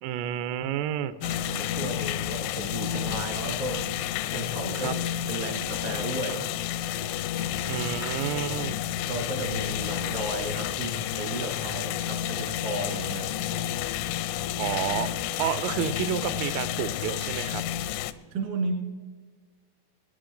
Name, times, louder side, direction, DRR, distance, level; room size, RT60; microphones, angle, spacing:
voice 1, 0.0-1.2 4.8-4.9 7.7-8.8 14.6-17.6, right 10 dB, 85° right, 13 dB, 3.2 m, -30 dB
sound 1, 1.2-18.1, left 11 dB, 85° left, 2.9 m, -31 dB
voice 2, 1.2-3.8 4.3-4.9 5.3-6.6 9.1-13.4 18.3-18.8, right 2 dB, 65° right, 3 dB, 1.0 m, -34 dB
21.5 x 10.5 x 3.8 m, 1.4 s
omnidirectional pair, 5.9 m